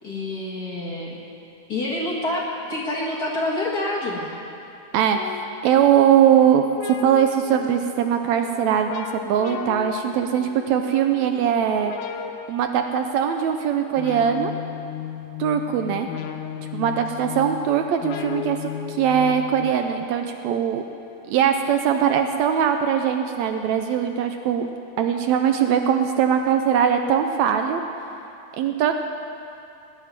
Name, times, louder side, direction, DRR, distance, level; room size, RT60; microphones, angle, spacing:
voice 1, 0.0-1.2 1.7-2.4 2.7-4.4, left 1 dB, 40° left, -5 dB, 1.6 m, -27 dB
sound 1, 5.1-20.0, left 11 dB, 90° left, 2.2 m, -36 dB
voice 2, 5.6-6.7 7.0-11.9 12.5-14.5 15.4-16.1 16.7-20.8 21.3-24.7 25.0-27.8 28.5-28.9, right 8 dB, 80° right, 6 dB, 1.8 m, -21 dB
18.0 x 6.0 x 9.4 m, 2.7 s
omnidirectional pair, 3.5 m